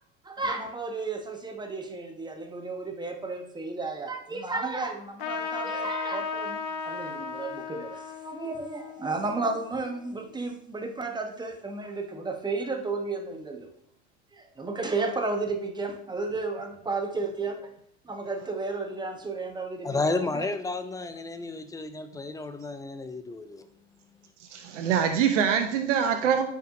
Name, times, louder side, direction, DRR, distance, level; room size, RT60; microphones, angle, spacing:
voice 1, 0.2-13.7 14.3-17.7 18.0-20.5, right 3 dB, 10° right, 4 dB, 1.1 m, -33 dB
Trumpet, 5.2-10.2, left 5 dB, 55° left, 0.8 m, -36 dB
voice 2, 19.8-23.6, left 3 dB, 10° left, 9 dB, 0.6 m, -32 dB
voice 3, 24.5-26.4, right 8 dB, 80° right, 5 dB, 0.7 m, -24 dB
9.0 x 4.7 x 2.6 m, 0.70 s
hypercardioid pair, 80°, 36 cm